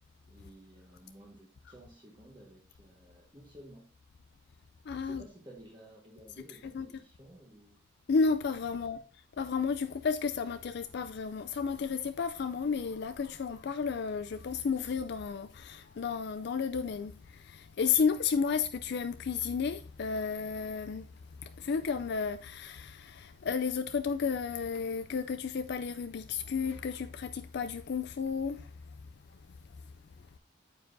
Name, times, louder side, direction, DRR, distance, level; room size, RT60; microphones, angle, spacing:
voice 1, 0.3-3.9 5.0-7.8, right 1 dB, 20° right, 1.4 m, -54 dB
voice 2, 4.9-5.2 6.5-6.9 8.1-21.1 21.4-29.0 29.3-29.4, left 5 dB, 55° left, 0.4 m, -32 dB
9.3 x 7.6 x 2.6 m
head